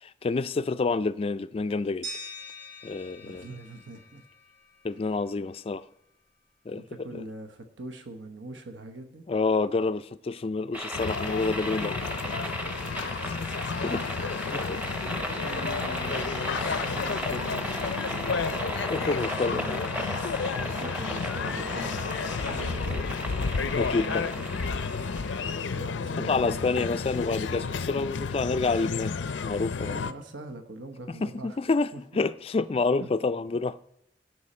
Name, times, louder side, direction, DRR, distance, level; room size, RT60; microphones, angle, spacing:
voice 1, 0.0-2.1 2.8-3.5 4.8-5.8 6.7-6.8 7.1-7.2 9.3-12.0 13.2-13.4 13.8-14.0 14.3-14.8 18.9-19.6 23.8-24.3 26.2-29.1 29.4-30.0 31.2-31.9 32.1-33.8, left 3 dB, 30° left, 0.3 m, -28 dB
sound 1, 2.0-4.9, equal, 60° right, 4.6 m, -43 dB
voice 2, 3.2-4.3 6.7-9.3 11.8-11.9 12.2-12.3 12.8-13.1 14.4-14.7 15.0-18.0 19.0-19.9 20.6-23.2 24.0-24.5 25.7-27.1 29.8-31.6 31.9-32.0 32.8-33.1, right 2 dB, 85° right, 1.0 m, -43 dB
sound 2, 10.7-25.9, equal, 10° right, 0.8 m, -36 dB
sound 3, 10.9-30.1, left 5 dB, 85° left, 0.5 m, -32 dB
16.5 x 6.2 x 4.3 m
head